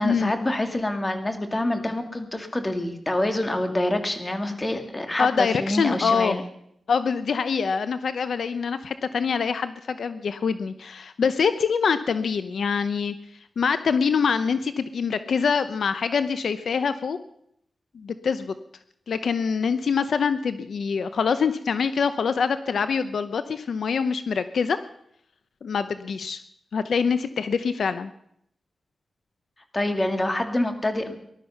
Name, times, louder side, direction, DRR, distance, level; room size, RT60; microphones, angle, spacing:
voice 1, 0.0-6.4 29.7-31.1, left 1 dB, 25° left, 6 dB, 2.5 m, -26 dB
voice 2, 5.2-6.3 6.9-13.1 13.6-17.2 17.9-18.5 19.1-24.8 25.6-26.4 26.7-28.1, left 6 dB, 80° left, 11 dB, 0.7 m, -25 dB
19.5 x 12.0 x 5.8 m, 0.73 s
wide cardioid pair, 80°, 0 cm